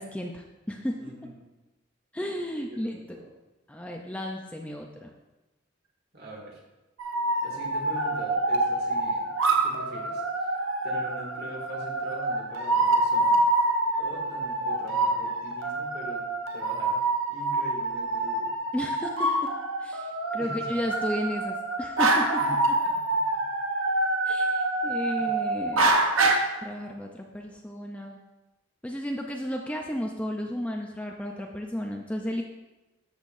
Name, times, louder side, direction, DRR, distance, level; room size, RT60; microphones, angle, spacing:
voice 1, 0.0-1.0 2.1-3.0 3.7-5.1 18.7-19.5 19.8-22.4 24.2-25.9 26.6-28.2 28.8-32.4, equal, 5° left, 1 dB, 0.5 m, -33 dB
voice 2, 1.0-1.3 2.7-3.3 6.1-6.6 7.4-10.6 10.8-13.4 14.0-16.2 16.5-17.0 17.3-18.5 20.4-20.8 22.4-23.4 25.2-25.3, right 1 dB, 50° right, -2 dB, 2.3 m, -42 dB
sound 1, 7.0-26.4, right 2 dB, 90° right, 1.0 m, -26 dB
13.5 x 7.4 x 2.6 m, 1.1 s
head